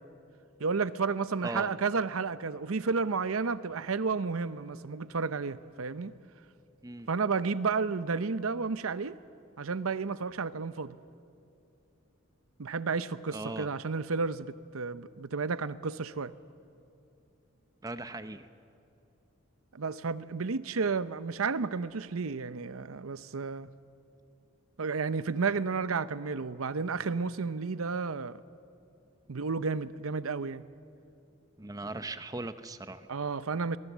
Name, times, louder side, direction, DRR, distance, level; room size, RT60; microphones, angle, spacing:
voice 1, 0.6-6.1 7.1-9.2 9.6-10.9 12.6-16.3 19.7-23.7 24.8-28.4 29.3-30.6 33.1-33.8, right 4 dB, 80° right, 0.7 m, -32 dB
voice 2, 13.3-13.7 17.8-18.5 31.6-33.1, right 2 dB, 15° right, 0.7 m, -38 dB
23.0 x 23.0 x 7.3 m
head